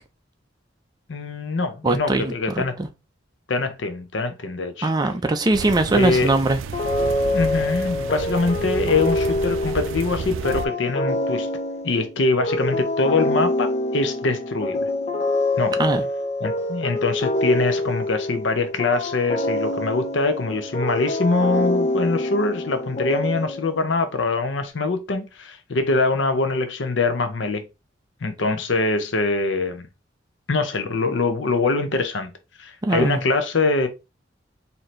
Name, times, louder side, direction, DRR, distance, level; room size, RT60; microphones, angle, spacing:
voice 1, 1.1-2.7 3.5-4.9 5.9-6.3 7.3-11.5 11.8-14.9 15.6-15.7 16.4-27.6 28.2-29.9 30.5-32.3 32.6-33.9, left 3 dB, 70° left, 0.7 m, -23 dB
voice 2, 1.8-2.9 4.8-6.6 15.8-16.0 32.8-33.2, right 2 dB, 20° right, 0.4 m, -21 dB
sound 1, 5.5-10.7, right 5 dB, 90° right, 0.4 m, -32 dB
sound 2, 6.7-23.9, left 1 dB, 35° left, 0.5 m, -26 dB
4.2 x 2.7 x 3.1 m
head